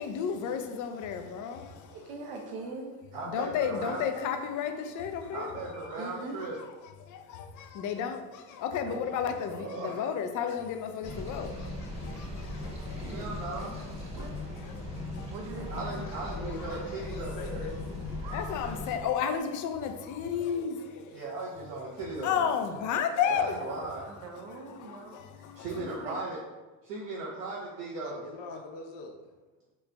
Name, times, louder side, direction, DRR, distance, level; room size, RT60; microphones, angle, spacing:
voice 1, 0.0-2.0 3.3-5.5 7.0-13.3 14.1-15.3 18.3-21.2 22.2-23.6 24.8-25.7, left 7 dB, 45° left, 0.5 m, -33 dB
voice 2, 1.9-2.9 6.0-6.4 8.8-9.0 12.6-13.7 14.1-14.4 15.3-16.1 18.2-18.6 23.5-26.2, right 3 dB, 55° right, 0.6 m, -43 dB
voice 3, 3.1-4.1 5.3-6.6 9.4-10.1 13.0-14.0 15.7-17.6 21.1-22.5 23.3-24.0 24.7-25.0 25.5-26.4 26.8-28.2, right 2 dB, 85° right, 0.8 m, -38 dB
sound 1, 11.0-19.0, left 2 dB, 15° right, 0.9 m, -38 dB
voice 4, 16.4-18.3 28.0-29.2, left 2 dB, 70° left, 0.8 m, -43 dB
3.0 x 2.4 x 3.3 m
hypercardioid pair, 75°, 44 cm